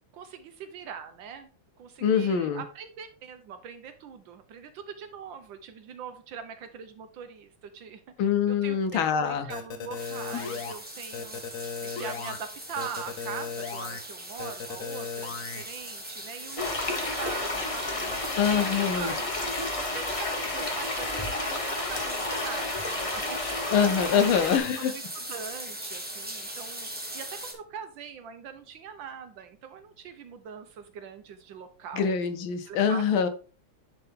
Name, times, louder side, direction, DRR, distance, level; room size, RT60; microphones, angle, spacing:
voice 1, 0.1-1.5 1.8-19.3 19.8-23.4 24.1-24.5 24.8-32.2 32.7-33.3, right 7 dB, 70° right, 1.3 m, -42 dB
voice 2, 2.0-2.6 8.2-9.5 18.4-19.1 23.7-24.9 31.9-33.3, left 7 dB, 70° left, 1.5 m, -24 dB
sound 1, 9.5-10.7 11.1-12.4 12.8-14.0 14.4-15.6, left 5 dB, 55° left, 1.0 m, -36 dB
sound 2, 9.9-27.5, right 1 dB, 10° right, 0.6 m, -41 dB
sound 3, 16.6-24.6, left 2 dB, 30° left, 0.6 m, -31 dB
10.5 x 3.7 x 3.5 m
omnidirectional pair, 2.4 m